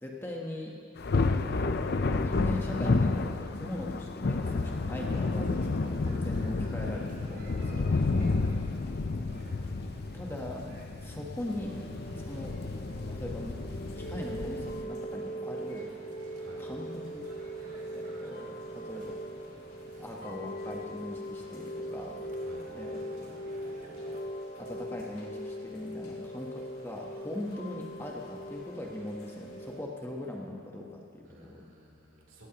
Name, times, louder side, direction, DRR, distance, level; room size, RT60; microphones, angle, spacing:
voice 1, 0.0-0.8 2.1-8.0 9.4-9.6 10.1-11.8 12.2-12.6 13.1-13.6 13.9-15.9 16.6-17.2 17.9-19.2 20.0-22.3 22.7-23.3 24.6-31.7, left 1 dB, 10° left, -1 dB, 1.1 m, -40 dB
Thunder, 1.0-14.8, left 3 dB, 50° left, 0.5 m, -31 dB
sound 1, 4.4-24.2, right 1 dB, 40° right, 1.7 m, -53 dB
voice 2, 8.3-9.1 16.4-16.7 22.4-22.7 31.2-32.5, right 1 dB, 70° right, -2 dB, 3.0 m, -53 dB
Chime / Rain, 11.3-29.7, right 1 dB, 90° left, 2.9 m, -41 dB
17.5 x 16.0 x 2.9 m, 2.3 s
head